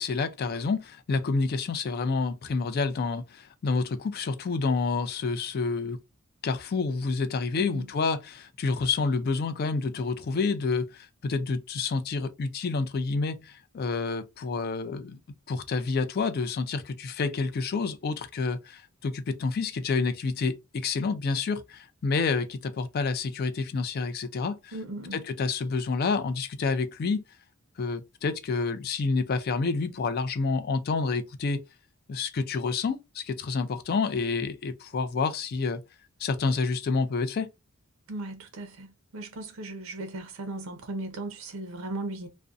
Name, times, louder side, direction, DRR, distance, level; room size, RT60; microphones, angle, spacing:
voice 1, 0.0-6.0 6.4-15.2 15.5-24.8 25.1-27.2 27.8-31.6 32.1-35.8 36.2-37.5, left 4 dB, 45° left, 0.3 m, -28 dB
voice 2, 24.7-25.2 38.1-42.3, right 2 dB, 70° right, 0.6 m, -37 dB
2.5 x 2.1 x 2.3 m
head